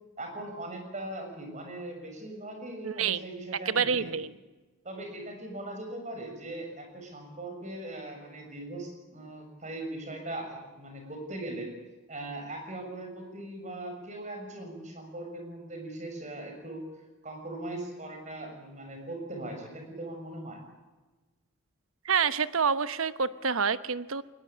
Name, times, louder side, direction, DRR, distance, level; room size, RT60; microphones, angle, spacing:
voice 1, 0.2-4.2 4.8-11.7 12.1-16.8 17.2-20.6, right 1 dB, 35° right, 4 dB, 6.6 m, -40 dB
voice 2, 2.8-3.2 3.7-4.3 22.0-24.2, right 6 dB, 90° right, 13 dB, 1.0 m, -27 dB
21.0 x 20.5 x 8.6 m, 1.2 s
head